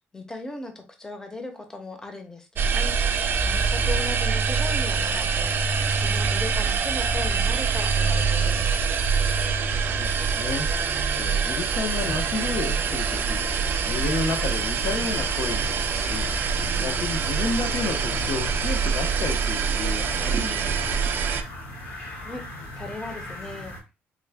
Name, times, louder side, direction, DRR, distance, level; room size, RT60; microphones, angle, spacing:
voice 1, 0.1-3.0 3.4-5.5 5.9-8.9 22.2-22.4 22.8-23.8, left 2 dB, 15° left, 0.6 m, -37 dB
sound 1, 2.6-21.4, right 5 dB, 50° right, 0.4 m, -25 dB
voice 2, 9.8-10.7 11.2-13.5 13.9-16.3 16.8-21.0, left 4 dB, 60° left, 0.6 m, -31 dB
sound 2, 11.9-23.8, left 1 dB, 80° left, 1.7 m, -39 dB
3.6 x 2.1 x 3.3 m
cardioid pair, 110°, 4 cm